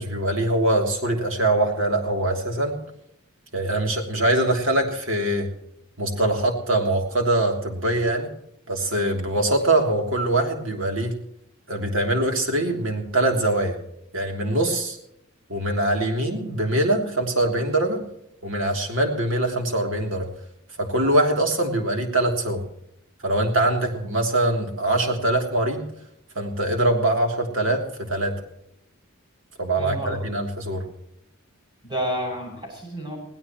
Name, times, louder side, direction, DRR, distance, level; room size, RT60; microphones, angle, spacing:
voice 1, 0.0-2.8 3.5-5.5 6.0-8.3 8.7-11.1 11.7-13.8 14.1-15.0 15.5-18.0 18.4-20.3 20.8-22.6 23.2-25.9 26.3-28.4 29.6-30.8, right 1 dB, 65° right, 2 dB, 3.1 m, -23 dB
voice 2, 29.8-30.2 31.8-33.2, right 1 dB, 20° right, 0 dB, 7.1 m, -30 dB
21.5 x 16.5 x 3.1 m, 0.77 s
head